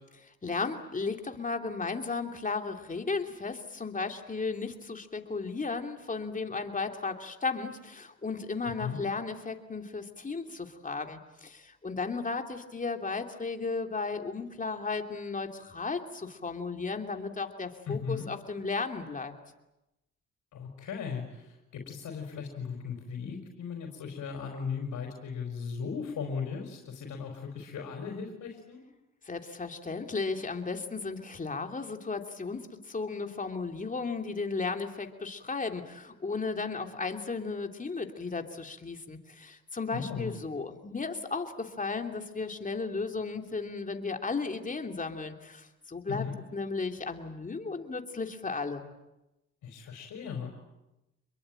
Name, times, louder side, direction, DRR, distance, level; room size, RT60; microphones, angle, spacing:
voice 1, 0.4-19.3 29.2-46.2 46.5-48.9, left 4 dB, 25° left, 5 dB, 3.0 m, -35 dB
voice 2, 8.6-9.0 17.9-18.3 20.5-28.8 39.9-40.3 46.1-46.3 49.6-50.5, left 6 dB, 75° left, 2 dB, 4.9 m, -37 dB
27.5 x 22.0 x 9.0 m, 0.95 s
cardioid pair, 90°, 30 cm